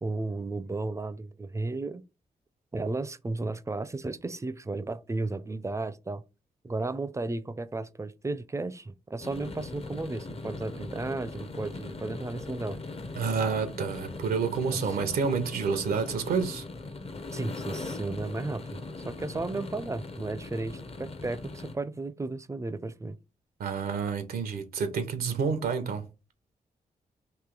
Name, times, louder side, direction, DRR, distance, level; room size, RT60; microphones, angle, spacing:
voice 1, 0.0-2.0 2.7-6.2 6.6-12.8 14.7-14.9 17.3-23.2, right 3 dB, 20° right, 0.4 m, -34 dB
sound 1, 9.2-21.7, left 3 dB, 40° left, 0.6 m, -40 dB
voice 2, 13.1-16.6 23.6-26.0, right 5 dB, 90° right, 0.6 m, -29 dB
3.1 x 2.7 x 3.7 m
cardioid pair, 50°, 15 cm